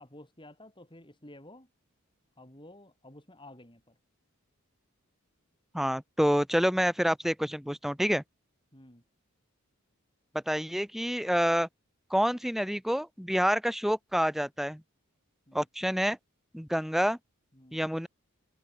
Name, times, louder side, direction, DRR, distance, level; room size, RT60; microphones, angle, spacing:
voice 1, 0.0-1.7 2.4-4.0 8.7-9.0 15.5-15.6 17.5-17.8, left 1 dB, 20° left, 6.7 m, -52 dB
voice 2, 5.7-8.2 10.3-11.7 12.1-14.8 15.5-16.2 16.5-17.2 17.7-18.1, equal, ahead, 1.9 m, -28 dB
head